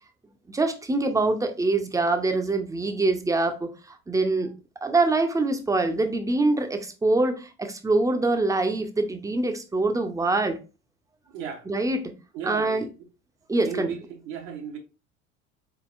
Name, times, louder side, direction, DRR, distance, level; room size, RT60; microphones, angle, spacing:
voice 1, 0.5-4.5 4.8-10.6 11.7-12.1 12.4-12.9 13.5-13.9, right 2 dB, 10° right, 0.6 m, -24 dB
voice 2, 11.3-11.7 12.3-12.9 13.6-14.8, right 7 dB, 70° right, 1.0 m, -35 dB
4.1 x 3.7 x 2.5 m
figure-of-eight pair, 65°, 39 cm